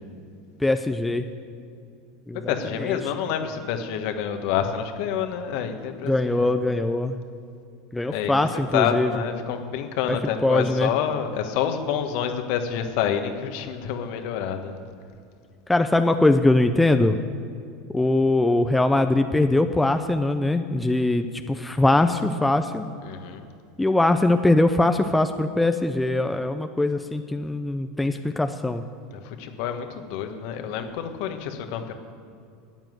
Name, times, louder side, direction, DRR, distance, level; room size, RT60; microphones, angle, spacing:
voice 1, 0.6-1.3 2.3-3.0 6.1-7.2 7.9-9.1 10.4-10.9 15.7-17.1 17.9-22.9 23.8-28.8, left 2 dB, 10° left, 7 dB, 0.7 m, -22 dB
voice 2, 2.5-6.5 8.1-14.8 23.0-23.4 29.1-31.9, left 8 dB, 60° left, 6 dB, 1.4 m, -28 dB
13.0 x 9.1 x 7.8 m, 2.5 s
hypercardioid pair, 85°, 0 cm